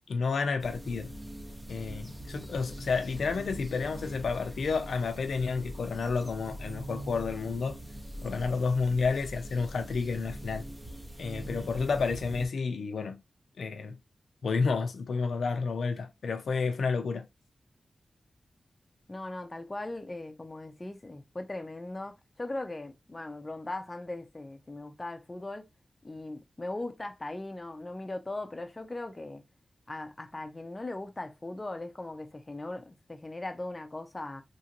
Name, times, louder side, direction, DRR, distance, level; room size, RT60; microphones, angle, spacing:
voice 1, 0.1-1.1 1.7-7.8 8.2-10.7 11.2-13.2 13.6-14.0 14.4-17.3, left 4 dB, 85° left, 0.5 m, -30 dB
sound 1, 0.6-12.5, equal, 15° right, 0.6 m, -42 dB
voice 2, 19.1-25.7 26.0-29.4 29.9-34.4, left 2 dB, 25° left, 0.5 m, -39 dB
3.0 x 2.5 x 2.8 m
wide cardioid pair, 105°, 0 cm